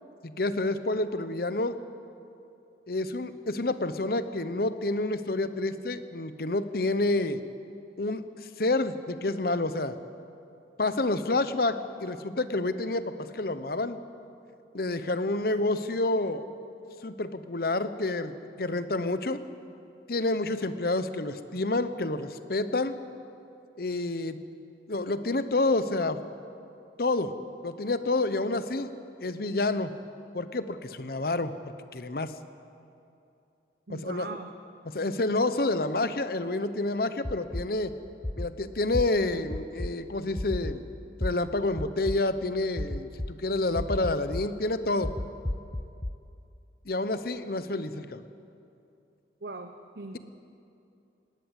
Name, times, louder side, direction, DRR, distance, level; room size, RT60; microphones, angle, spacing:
voice 1, 0.2-1.8 2.9-7.4 8.0-10.0 10.8-14.0 14.7-16.4 17.0-19.4 20.1-23.0 23.8-24.4 24.9-26.2 27.0-27.3 27.6-28.9 29.2-29.9 30.3-31.5 31.9-32.3 33.9-34.4 34.8-37.9 38.4-40.8 41.2-45.1 46.8-48.2, left 2 dB, 55° left, 11 dB, 0.9 m, -29 dB
voice 2, 33.9-34.5 49.4-50.2, right 3 dB, 60° right, 6 dB, 0.9 m, -40 dB
sound 1, 37.2-37.6 38.2-38.5 38.9-39.0 39.5-39.9 40.4-40.7 41.2-41.3 41.8-42.2 42.8-43.3 43.8-44.4 45.0-46.1, left 1 dB, 15° left, 0.5 m, -31 dB
19.5 x 18.0 x 8.2 m, 2.7 s
head